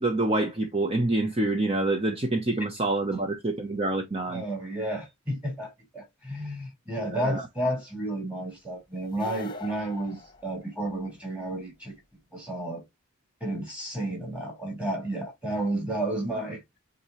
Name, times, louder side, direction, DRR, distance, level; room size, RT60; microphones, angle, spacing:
voice 1, 0.0-4.4 7.1-7.4, right 2 dB, 30° right, 0.9 m, -26 dB
voice 2, 4.3-11.9 12.3-12.8 13.4-16.6, right 1 dB, 5° right, 4.3 m, -32 dB
sound 1, 9.1-11.1, left 2 dB, 20° left, 1.2 m, -44 dB
8.6 x 4.0 x 3.0 m
head